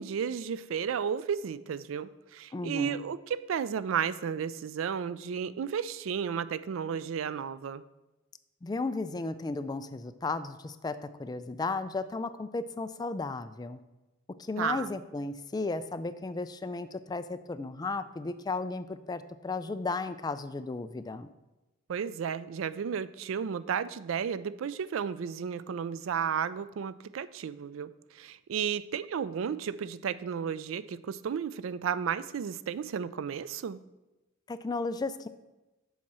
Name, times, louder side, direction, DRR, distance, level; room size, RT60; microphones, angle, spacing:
voice 1, 0.0-7.8 14.6-14.9 21.9-33.8, right 7 dB, 80° right, 15 dB, 0.4 m, -33 dB
voice 2, 2.5-3.1 8.6-13.8 14.4-21.3 34.5-35.3, left 3 dB, 20° left, 11 dB, 0.3 m, -34 dB
7.2 x 4.3 x 6.0 m, 1.1 s
head